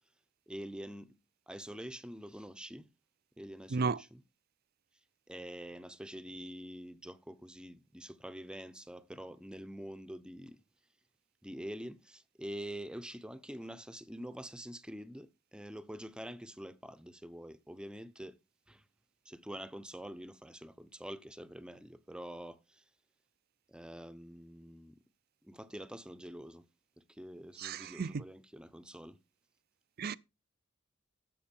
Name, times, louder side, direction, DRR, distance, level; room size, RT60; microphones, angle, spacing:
voice 1, 0.5-1.2 1.5-2.9 3.4-4.2 5.3-10.6 11.4-18.4 18.7-18.8 19.3-22.8 23.7-25.0 25.4-26.6 27.1-29.2, equal, 5° right, 0.7 m, -46 dB
voice 2, 3.7-4.0 27.6-28.2 30.0-30.2, right 4 dB, 50° right, 0.5 m, -33 dB
13.0 x 7.7 x 4.5 m
head